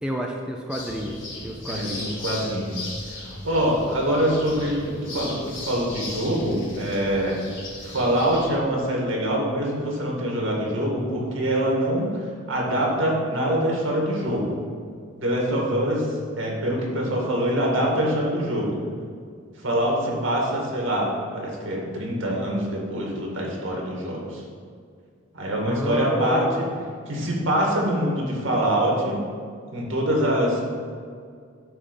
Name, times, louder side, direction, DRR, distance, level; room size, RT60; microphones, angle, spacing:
voice 1, 0.0-2.0 25.7-26.8, right 1 dB, 5° right, 0 dB, 0.5 m, -30 dB
sound 1, 0.7-8.5, left 2 dB, 65° left, 1.7 m, -37 dB
voice 2, 1.7-2.9 3.1-7.4 7.8-12.2 12.5-14.6 15.2-18.8 19.6-24.4 25.3-26.5 27.1-29.2 29.7-30.6, equal, 75° right, -2 dB, 2.0 m, -24 dB
9.0 x 3.6 x 6.8 m, 2.1 s
head